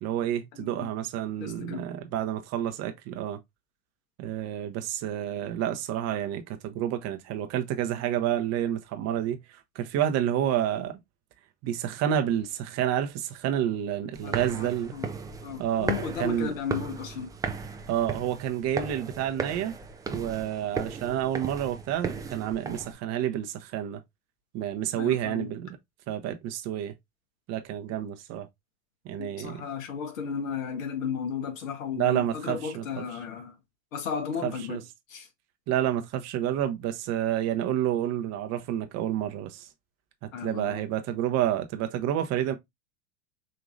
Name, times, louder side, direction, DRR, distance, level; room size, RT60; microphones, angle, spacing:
voice 1, 0.0-3.4 4.2-11.0 11.6-15.0 15.6-15.9 16.2-16.5 17.9-19.7 20.1-24.0 24.5-25.8 26.1-26.9 27.5-28.5 29.0-29.6 32.0-33.0 34.4-34.8 35.7-39.7 40.4-42.5, right 11 dB, 35° right, 0.8 m, -29 dB
voice 2, 0.5-0.9 1.4-1.9 14.2-15.1 15.4-17.3 25.0-25.5 29.2-33.6 33.9-34.8 35.1-35.3 40.3-40.8, left 6 dB, 65° left, 1.5 m, -34 dB
sound 1, 14.1-22.9, right 5 dB, 10° right, 0.4 m, -36 dB
5.1 x 2.8 x 2.5 m
hypercardioid pair, 90°, 43 cm